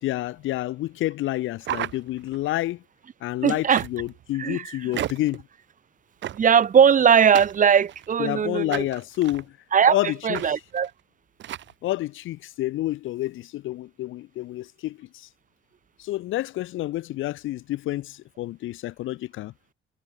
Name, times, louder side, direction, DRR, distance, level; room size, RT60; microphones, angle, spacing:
voice 1, 0.0-2.8 3.2-5.4 8.2-9.5 9.9-10.5 11.8-15.3 16.0-19.5, left 16 dB, 85° left, 1.3 m, -29 dB
sound 1, 1.6-2.5 3.8-4.2 4.9-5.4 6.2-6.7 7.3-8.2 8.7-9.4 10.3-10.5 10.8-10.9 11.4-11.7, right 12 dB, 70° right, 1.1 m, -33 dB
voice 2, 3.4-3.8 4.4-4.9 6.3-8.9 9.7-10.0 10.2-10.9, right 7 dB, 40° right, 0.8 m, -19 dB
cardioid pair, 90°, 20 cm